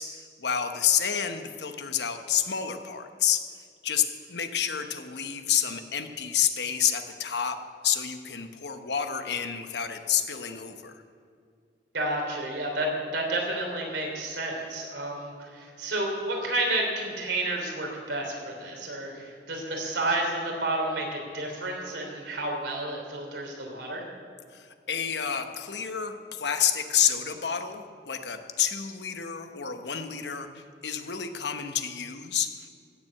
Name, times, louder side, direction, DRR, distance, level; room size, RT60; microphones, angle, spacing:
voice 1, 0.0-3.4 3.8-7.6 7.8-11.0 24.5-32.7, left 9 dB, 75° left, 7 dB, 1.0 m, -29 dB
voice 2, 11.9-24.1, right 2 dB, 85° right, 1 dB, 3.2 m, -31 dB
15.5 x 7.7 x 7.6 m, 2.2 s
head